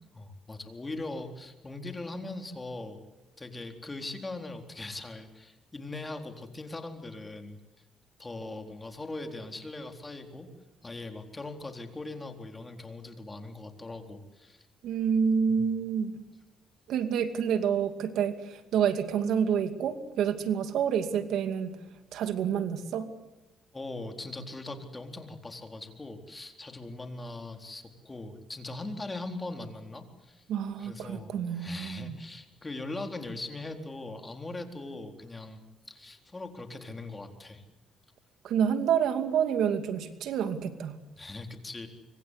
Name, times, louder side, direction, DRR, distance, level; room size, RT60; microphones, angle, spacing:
voice 1, 0.1-3.0 3.4-7.6 8.2-10.5 10.8-14.7 15.5-15.7 23.7-30.5 30.8-37.6 41.2-41.9, left 2 dB, 20° left, 6 dB, 4.0 m, -40 dB
voice 2, 14.8-16.1 16.9-21.8 22.1-23.1 30.5-32.2 38.4-41.0, right 7 dB, 80° right, 9 dB, 2.5 m, -28 dB
25.5 x 25.0 x 8.3 m, 1.0 s
cardioid pair, 90°, 0 cm